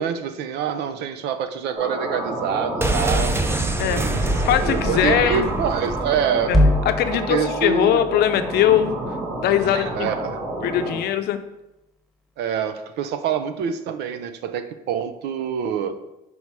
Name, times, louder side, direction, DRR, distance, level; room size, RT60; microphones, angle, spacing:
voice 1, 0.0-3.6 3.9-4.2 4.6-6.5 7.3-8.0 9.7-10.4 12.4-16.0, right 7 dB, 80° right, 9 dB, 0.6 m, -26 dB
sound 1, 1.7-11.0, right 1 dB, 65° right, 2.1 m, -30 dB
sound 2, 2.8-6.6 6.8-6.9, right 2 dB, 15° right, 0.5 m, -25 dB
voice 2, 4.4-5.5 6.5-6.6 6.8-9.0 9.4-10.1 10.6-11.4, left 10 dB, 70° left, 10 dB, 0.6 m, -20 dB
sound 3, 6.5-10.9, left 1 dB, ahead, 1.2 m, -26 dB
5.4 x 4.7 x 4.8 m, 0.92 s
cardioid pair, 110°, 17 cm